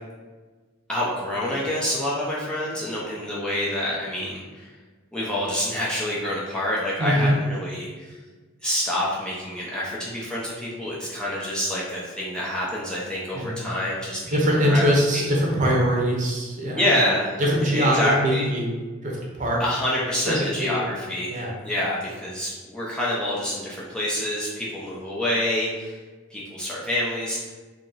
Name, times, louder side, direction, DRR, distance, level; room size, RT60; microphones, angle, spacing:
voice 1, 0.9-4.7 5.1-8.2 8.6-14.4 14.6-14.8 15.1-15.3 16.7-17.3 17.7-18.5 19.6-21.3 21.6-26.0 26.3-27.5, left 1 dB, 5° left, -7 dB, 0.6 m, -27 dB
voice 2, 7.0-7.4 13.3-13.7 14.3-16.8 17.4-18.7 19.0-19.6 20.2-20.8 21.3-21.5, equal, 40° right, -3 dB, 0.8 m, -22 dB
2.8 x 2.8 x 3.9 m, 1.3 s
head